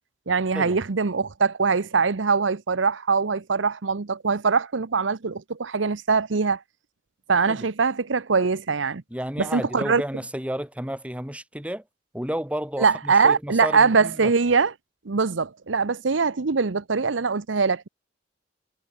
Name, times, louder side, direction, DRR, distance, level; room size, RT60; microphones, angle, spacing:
voice 1, 0.3-6.6 7.3-9.0 9.4-10.0 12.8-14.7 15.1-17.9, right 5 dB, 85° right, 0.8 m, -22 dB
voice 2, 9.1-11.8 12.1-14.3, equal, 5° right, 2.4 m, -32 dB
head